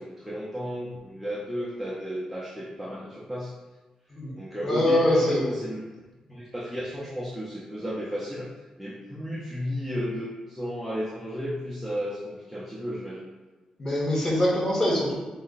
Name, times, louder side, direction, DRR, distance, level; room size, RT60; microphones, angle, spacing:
voice 1, 0.0-3.5 4.4-5.8 6.3-8.5 8.8-13.3, equal, 5° right, -7 dB, 0.5 m, -33 dB
voice 2, 4.6-5.5 13.8-15.1, left 1 dB, 20° left, -5 dB, 1.1 m, -23 dB
4.1 x 2.1 x 3.9 m, 1.2 s
wide cardioid pair, 155°, 2 cm